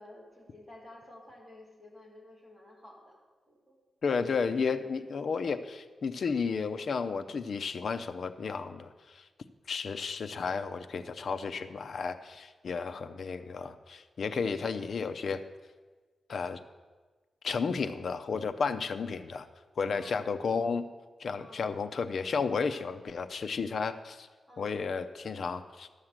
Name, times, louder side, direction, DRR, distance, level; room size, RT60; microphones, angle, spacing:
voice 1, 0.0-3.2 3.5-3.8 12.7-13.2 19.8-20.3 21.4-21.7 24.5-24.9, left 1 dB, 10° right, -3 dB, 2.4 m, -52 dB
voice 2, 4.0-9.2 9.7-15.4 16.3-16.6 17.4-19.5 19.8-20.8 21.2-24.3 24.6-25.9, left 5 dB, 50° left, 8 dB, 0.6 m, -32 dB
12.5 x 6.5 x 7.4 m, 1.4 s
wide cardioid pair, 180°, 0 cm